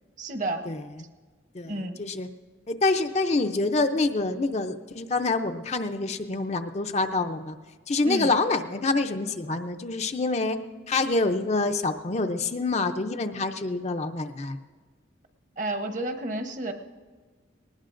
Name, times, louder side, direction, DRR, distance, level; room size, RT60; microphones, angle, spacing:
voice 1, 0.2-0.7 1.7-2.1 8.0-8.3 15.6-16.7, right 1 dB, 40° right, 6 dB, 0.9 m, -31 dB
voice 2, 2.7-7.6 7.9-10.6 10.9-14.6, left 3 dB, 35° left, 7 dB, 0.5 m, -26 dB
20.0 x 19.0 x 2.5 m, 1.4 s
head